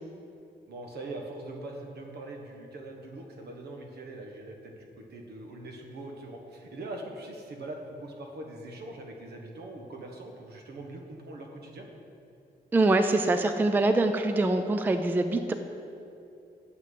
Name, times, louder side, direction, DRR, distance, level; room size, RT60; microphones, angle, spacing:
voice 1, 0.7-11.9, right 2 dB, 75° right, 2 dB, 1.3 m, -42 dB
voice 2, 12.7-15.5, right 2 dB, 10° right, 7 dB, 0.3 m, -24 dB
8.1 x 5.9 x 7.6 m, 2.6 s
wide cardioid pair, 175°, 17 cm